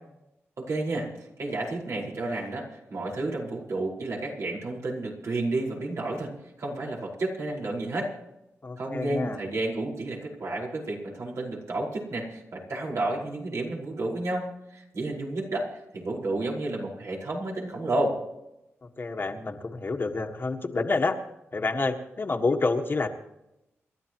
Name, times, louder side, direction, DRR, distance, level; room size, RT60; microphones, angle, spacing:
voice 1, 0.6-6.3 6.6-8.1 8.8-18.2, right 2 dB, 70° right, -2 dB, 4.9 m, -31 dB
voice 2, 8.6-9.4 19.0-21.2 21.5-23.1, left 3 dB, 45° left, 4 dB, 1.6 m, -28 dB
28.0 x 12.0 x 3.0 m, 0.90 s
cardioid pair, 80°, 5 cm